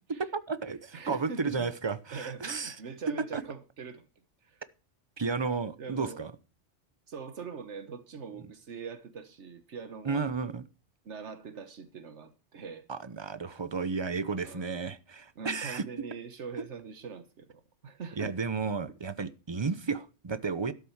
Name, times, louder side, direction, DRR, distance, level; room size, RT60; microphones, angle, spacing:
voice 1, 0.2-2.7 3.3-3.4 5.2-6.3 10.0-10.6 12.9-15.8 18.2-20.7, right 4 dB, 30° right, 0.7 m, -33 dB
voice 2, 0.9-1.7 2.1-4.1 4.4-4.6 5.8-6.2 7.1-10.3 11.0-12.9 14.4-14.8 15.4-18.4 18.9-19.0, right 5 dB, 80° right, 1.4 m, -42 dB
12.5 x 6.8 x 7.2 m
omnidirectional pair, 1.2 m